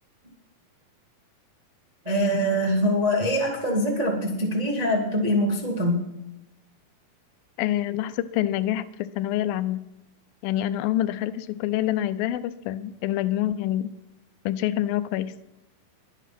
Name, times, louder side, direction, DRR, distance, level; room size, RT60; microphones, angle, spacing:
voice 1, 2.0-6.1, equal, 20° right, -1 dB, 1.1 m, -24 dB
voice 2, 7.6-9.9 10.4-13.9 14.5-15.4, left 13 dB, 85° left, 13 dB, 2.5 m, -26 dB
22.0 x 8.3 x 5.9 m, 0.92 s
omnidirectional pair, 4.1 m